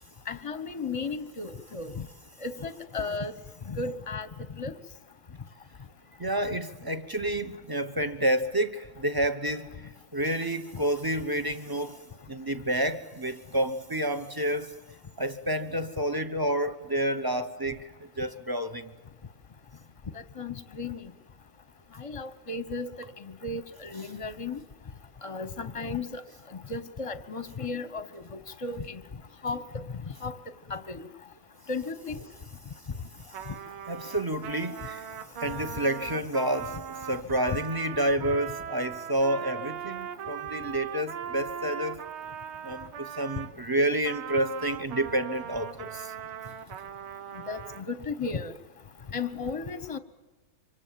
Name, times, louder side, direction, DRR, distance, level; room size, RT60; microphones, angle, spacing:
voice 1, 0.3-1.9 2.4-3.3 3.7-4.3 4.6-4.7 20.4-21.0 22.0-22.9 23.4-24.6 25.2-26.2 26.7-29.0 29.4-29.8 30.2-30.3 30.7-31.0 31.7-32.2 47.5-48.5 49.1-50.0, left 4 dB, 25° left, 0.7 m, -34 dB
voice 2, 6.2-12.0 12.3-14.7 15.2-18.9 33.9-35.1 35.4-42.0 42.6-46.1, right 1 dB, 35° right, 0.3 m, -29 dB
Trumpet, 33.3-43.5 44.0-47.8, right 9 dB, 85° right, 2.0 m, -39 dB
27.0 x 25.5 x 7.6 m
omnidirectional pair, 2.2 m